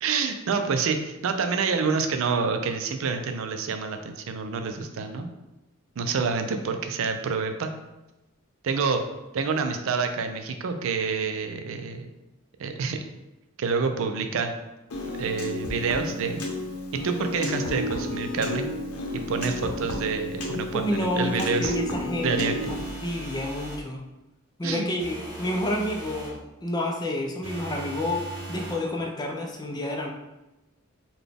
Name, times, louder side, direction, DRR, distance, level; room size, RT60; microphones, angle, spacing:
voice 1, 0.0-5.3 6.0-7.7 8.6-9.0 9.3-12.1 12.6-13.0 13.6-14.5 15.2-16.4 17.0-18.7 19.1-21.8 22.2-22.6 24.6-24.9, right 5 dB, 65° right, 6 dB, 0.4 m, -27 dB
Piano, 14.9-22.9, left 1 dB, 90° left, 0.8 m, -32 dB
voice 2, 20.7-24.0 24.6-30.1, left 1 dB, 20° left, 1 dB, 0.4 m, -29 dB
sound 1, 22.6-23.9 25.0-26.4 27.4-28.9, right 1 dB, 25° right, 1.0 m, -39 dB
3.9 x 2.3 x 3.4 m, 1.0 s
head